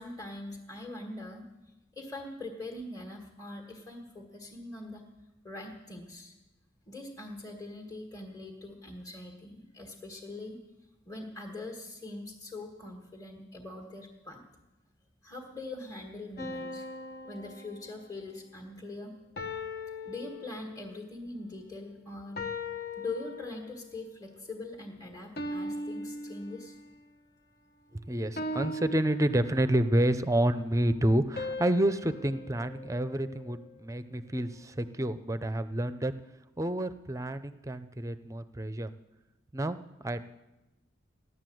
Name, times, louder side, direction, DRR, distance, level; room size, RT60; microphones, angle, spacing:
voice 1, 0.0-1.5 2.0-5.1 5.4-6.3 6.9-10.6 11.1-14.4 15.2-16.9 17.2-19.1 20.0-22.4 23.0-26.8, left 2 dB, 20° left, 1 dB, 1.6 m, -42 dB
sound 1, 16.4-18.3 19.4-21.0 22.4-23.9 25.4-27.0 28.4-30.0 31.4-33.7, left 1 dB, 50° left, 1.1 m, -39 dB
voice 2, 27.9-36.1 36.6-38.9 39.5-40.3, right 1 dB, 15° right, 12 dB, 0.6 m, -29 dB
16.0 x 11.0 x 7.8 m, 1.0 s
head